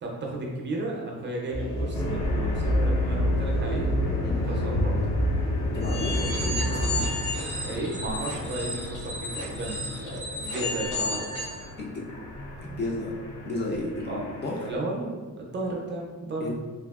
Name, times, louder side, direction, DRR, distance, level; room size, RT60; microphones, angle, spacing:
voice 1, 0.0-5.0 7.6-11.6 14.1-14.3 14.6-16.5, right 2 dB, 35° right, -2 dB, 0.4 m, -34 dB
sound 1, 1.5-7.1, equal, 60° left, 1.1 m, -27 dB
sound 2, 1.9-14.8, left 2 dB, 75° left, 0.8 m, -36 dB
voice 2, 5.7-7.1 11.8-12.0 12.6-13.1 13.4-14.7 16.4-16.5, left 2 dB, 35° left, -2 dB, 0.4 m, -32 dB
sound 3, 5.8-11.6, left 1 dB, 90° left, 1.4 m, -33 dB
3.4 x 2.3 x 2.3 m, 1.4 s
wide cardioid pair, 170°, 31 cm